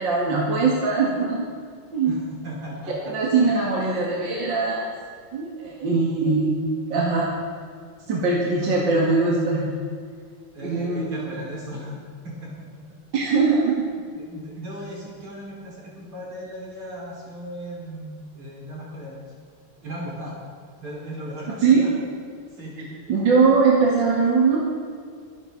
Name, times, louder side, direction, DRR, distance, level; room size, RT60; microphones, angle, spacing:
voice 1, 0.0-1.4 1.9-2.1 3.1-4.9 5.3-7.3 8.1-9.7 10.6-11.2 13.1-13.8 21.6-22.0 23.1-24.6, right 4 dB, 60° right, -4 dB, 2.8 m, -21 dB
voice 2, 2.0-3.8 10.5-12.7 14.2-19.2 19.8-20.4 20.8-21.9 22.5-23.1, equal, 80° right, -5 dB, 6.1 m, -37 dB
24.5 x 11.5 x 4.1 m, 2.1 s
omnidirectional pair, 2.4 m